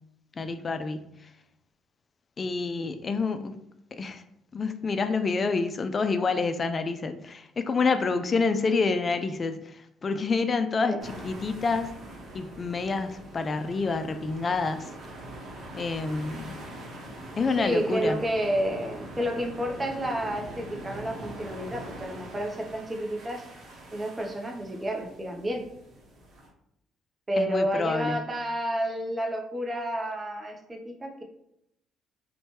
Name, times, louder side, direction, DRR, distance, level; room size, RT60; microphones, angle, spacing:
voice 1, 0.4-1.3 2.4-3.6 3.9-4.2 4.5-11.9 12.3-14.9 15.7-16.5 17.4-18.2 27.4-28.3, left 4 dB, 40° left, 0.3 m, -28 dB
sound 1, 11.0-26.5, right 1 dB, 60° right, 0.8 m, -43 dB
voice 2, 17.6-23.4 23.9-25.7 27.3-31.2, equal, 25° right, 0.6 m, -30 dB
2.7 x 2.2 x 2.9 m
hypercardioid pair, 60°, 0 cm